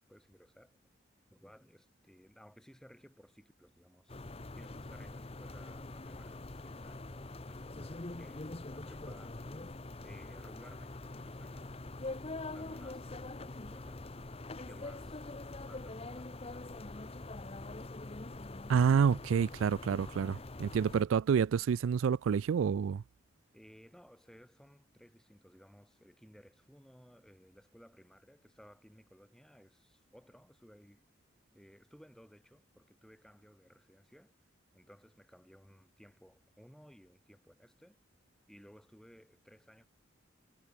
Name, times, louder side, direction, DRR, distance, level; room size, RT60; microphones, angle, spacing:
voice 1, 0.1-0.8 1.3-4.3 4.5-9.5 10.0-11.8 12.5-17.6 21.1-21.2 23.5-31.0 31.5-34.3 34.7-38.0 38.5-39.9, equal, 5° left, 6.4 m, -59 dB
sound 1, 4.1-21.0, left 2 dB, 30° left, 0.9 m, -44 dB
voice 2, 18.7-23.0, right 7 dB, 85° right, 0.3 m, -28 dB
head